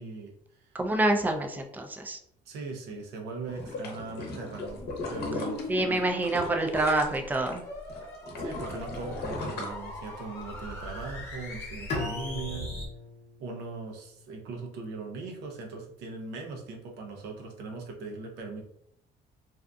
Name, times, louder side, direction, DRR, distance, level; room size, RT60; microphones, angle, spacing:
voice 1, 0.0-0.8 2.5-4.8 5.1-6.0 8.4-12.7 13.4-18.6, right 3 dB, 80° right, 0 dB, 0.6 m, -39 dB
voice 2, 0.7-2.2 5.7-7.6, right 2 dB, 10° right, 4 dB, 0.3 m, -27 dB
sound 1, 3.5-7.6 7.9-10.4 10.8-10.9, left 2 dB, 70° left, 0.8 m, -38 dB
sound 2, 4.7-12.9, left 1 dB, 15° left, 0.9 m, -40 dB
Bowed string instrument, 11.9-14.9, left 3 dB, 40° left, 0.6 m, -39 dB
2.6 x 2.4 x 2.3 m, 0.72 s
cardioid pair, 110°, 17 cm